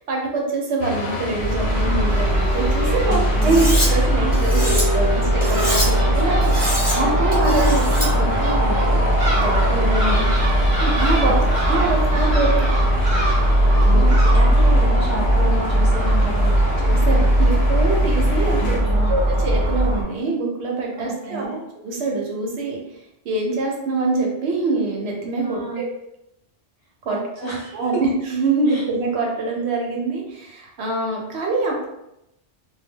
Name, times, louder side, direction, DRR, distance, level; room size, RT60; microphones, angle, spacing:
voice 1, 0.0-7.7 9.3-10.2 10.8-11.3 11.7-12.7 13.8-14.1 16.8-18.8 19.1-21.5 21.8-22.8 23.2-25.9 27.0-31.9, right 3 dB, 70° right, -1 dB, 0.9 m, -24 dB
sound 1, 0.8-18.8, left 2 dB, 65° left, 0.8 m, -32 dB
Crow / Gull seagull, 1.4-20.0, right 1 dB, 35° right, 0.6 m, -18 dB
voice 2, 3.0-3.6 7.4-9.0 11.2-11.8 13.6-16.6 18.6-19.1 21.0-21.6 25.4-25.8 27.1-27.2 27.4-27.8 28.7-28.8, right 1 dB, 35° left, -6 dB, 0.5 m, -29 dB
Cutlery silverware, 3.4-3.9 4.3-4.8 5.4-5.9 6.4-7.0 7.3-8.1, left 1 dB, 10° right, 0.8 m, -26 dB
2.2 x 2.1 x 3.4 m, 0.84 s
omnidirectional pair, 1.2 m